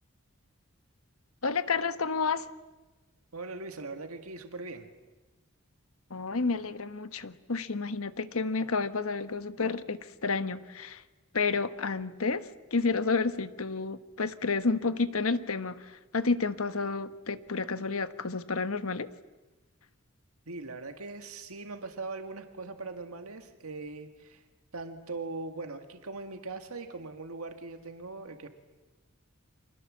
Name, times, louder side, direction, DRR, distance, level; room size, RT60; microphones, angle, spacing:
voice 1, 1.4-2.5 6.1-11.0 11.3-15.8 16.1-19.1, left 4 dB, 70° left, 12 dB, 1.3 m, -30 dB
voice 2, 3.3-4.9 20.5-24.4 24.7-28.5, right 3 dB, 80° right, 6 dB, 1.9 m, -40 dB
29.5 x 25.5 x 7.5 m, 1.2 s
head